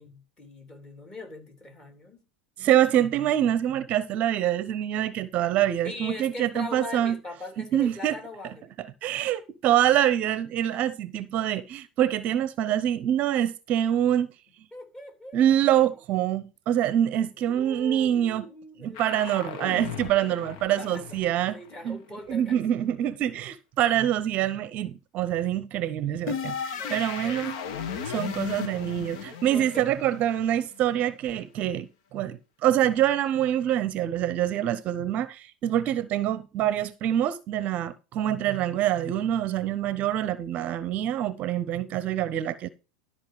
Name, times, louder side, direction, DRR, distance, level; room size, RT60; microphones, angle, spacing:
voice 1, 0.0-2.2 5.8-8.6 14.7-15.8 17.4-19.8 20.2-20.4 20.8-21.0 21.5-22.6 26.7-27.5 29.2-29.9, left 2 dB, 20° left, 3.5 m, -41 dB
voice 2, 2.6-7.2 7.7-8.1 9.0-14.3 15.3-18.4 18.8-21.6 21.8-22.0 22.3-27.5 28.0-42.7, right 11 dB, 40° right, 0.7 m, -25 dB
sound 1, 18.9-21.8 26.3-31.0, left 7 dB, 55° left, 1.4 m, -36 dB
13.0 x 5.4 x 5.0 m
figure-of-eight pair, 85°, 4 cm